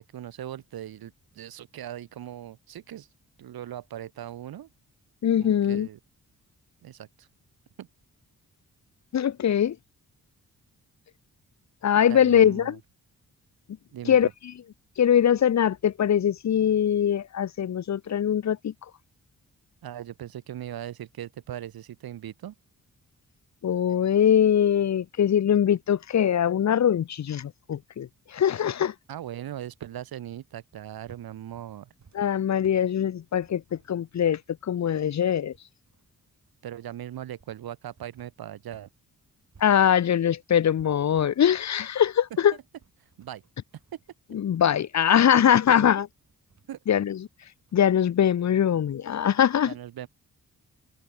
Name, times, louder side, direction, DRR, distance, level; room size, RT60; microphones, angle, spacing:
voice 1, 0.0-3.1 3.4-4.7 5.4-6.0 6.8-7.3 7.8-7.9 12.1-12.8 13.9-14.3 19.8-22.5 29.1-31.9 36.6-38.9 43.0-43.4 43.9-44.0 46.7-46.8 49.6-50.1, right 11 dB, 75° right, 0.9 m, -39 dB
voice 2, 5.2-5.9 9.1-9.8 11.8-12.8 14.1-14.3 15.0-18.7 23.6-28.9 32.1-33.6 33.9-35.5 39.6-42.5 44.3-46.1 46.9-47.2 47.7-49.7, left 9 dB, 50° left, 0.6 m, -22 dB
sound 1, 30.7-39.0 39.2-48.0, right 5 dB, 50° right, 4.9 m, -61 dB
cardioid pair, 60°, 36 cm